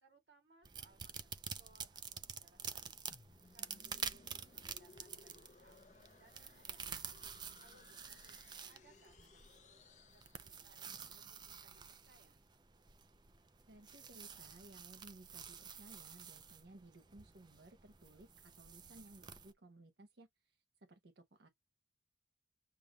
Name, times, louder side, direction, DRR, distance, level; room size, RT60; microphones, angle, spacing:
voice 1, 0.0-3.2 3.5-4.2 4.5-7.2 7.6-12.4, right 2 dB, 85° right, 2.9 m, -69 dB
sound 1, 0.6-19.5, right 7 dB, 25° right, 0.5 m, -49 dB
sound 2, 3.1-11.0, left 3 dB, 40° left, 0.7 m, -63 dB
voice 2, 13.7-20.6 20.9-21.5, right 2 dB, 65° right, 0.8 m, -59 dB
6.9 x 2.5 x 2.9 m
head